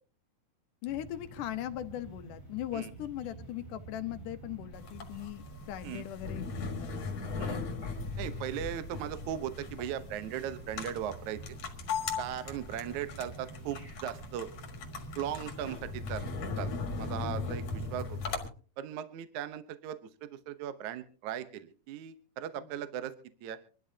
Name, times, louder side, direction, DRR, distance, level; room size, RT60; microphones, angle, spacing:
voice 1, 0.8-6.9 22.6-22.7, left 12 dB, 70° left, 9 dB, 2.4 m, -39 dB
sound 1, 0.8-18.1, right 3 dB, 90° right, 8.4 m, -47 dB
sound 2, 4.7-18.5, left 5 dB, 55° left, 2.4 m, -39 dB
voice 2, 8.2-11.4 12.2-14.5 15.2-16.3 16.6-16.7 17.0-18.3 18.8-23.1 23.4-23.6, right 10 dB, 70° right, 11 dB, 2.1 m, -38 dB
26.0 x 12.0 x 2.8 m, 0.38 s
omnidirectional pair, 4.2 m